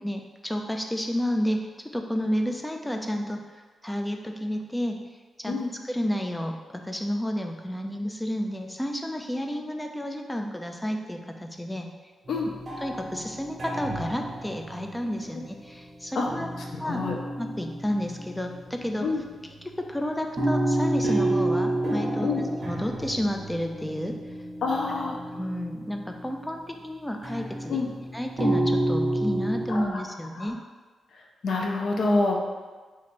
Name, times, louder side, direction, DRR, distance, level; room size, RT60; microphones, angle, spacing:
voice 1, 0.0-3.4 3.8-5.0 5.4-5.5 5.9-11.9 12.8-16.5 16.8-17.0 17.4-19.1 19.6-22.3 22.6-24.2 25.3-27.8 28.1-30.6, equal, 10° left, 4 dB, 0.3 m, -31 dB
sound 1, 12.3-15.8 16.3-19.5 20.3-26.5 27.2-29.9, right 1 dB, 40° right, 0.9 m, -30 dB
voice 2, 16.8-17.1 19.0-19.2 22.2-22.4 24.6-25.2 27.7-27.9 29.7-30.0 30.4-30.5 31.4-32.4, left 3 dB, 65° left, 0 dB, 0.5 m, -26 dB
3.0 x 2.5 x 4.2 m, 1.4 s
cardioid pair, 110°, 0 cm